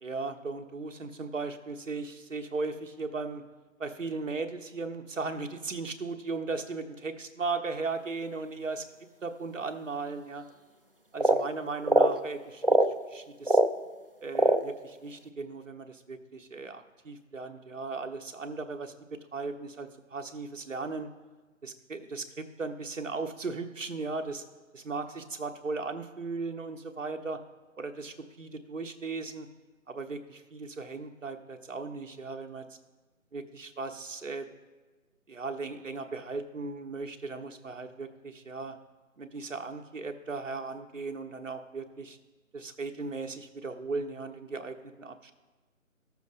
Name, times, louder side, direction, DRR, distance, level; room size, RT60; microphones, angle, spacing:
voice 1, 0.0-3.4 3.8-8.8 9.2-10.4 11.1-12.8 13.1-13.6 14.2-21.1 21.6-24.4 24.7-27.4 27.8-29.5 29.9-32.7 33.3-34.5 35.3-38.8 39.2-42.2 42.5-45.3, right 3 dB, 65° right, 5 dB, 1.1 m, -37 dB
sound 1, 11.2-11.4 11.8-12.2 12.6-12.9 13.5-13.7 14.4-14.7, right 1 dB, 45° right, 0.4 m, -22 dB
13.5 x 7.1 x 4.1 m, 1.2 s
figure-of-eight pair, 175°, 41 cm